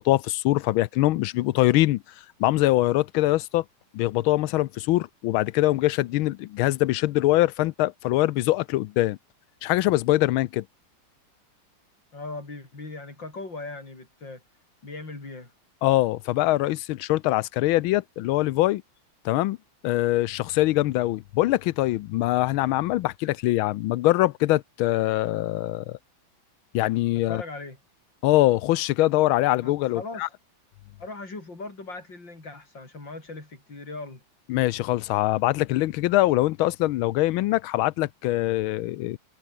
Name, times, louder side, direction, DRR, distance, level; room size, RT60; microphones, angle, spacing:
voice 1, 0.0-2.0 2.4-3.6 3.9-9.2 9.6-10.6 15.8-18.8 19.2-19.6 19.8-26.0 26.7-27.4 28.2-30.3 34.5-39.2, left 16 dB, 90° left, 1.5 m, -23 dB
voice 2, 12.1-14.4 14.8-15.5 27.1-27.8 29.6-30.3 31.0-34.2, left 3 dB, 65° left, 6.2 m, -39 dB
omnidirectional pair, 2.2 m